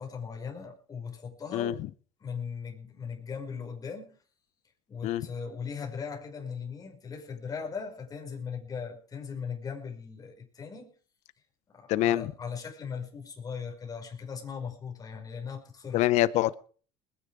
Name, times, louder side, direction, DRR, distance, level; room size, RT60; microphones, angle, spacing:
voice 1, 0.0-1.8 2.2-4.2 4.9-10.9 11.7-16.0, left 6 dB, 30° left, 0 dB, 5.5 m, -38 dB
voice 2, 11.9-12.3 15.9-16.5, left 14 dB, 60° left, 17 dB, 0.8 m, -25 dB
20.5 x 10.5 x 4.9 m, 0.43 s
supercardioid pair, 100°, 13 cm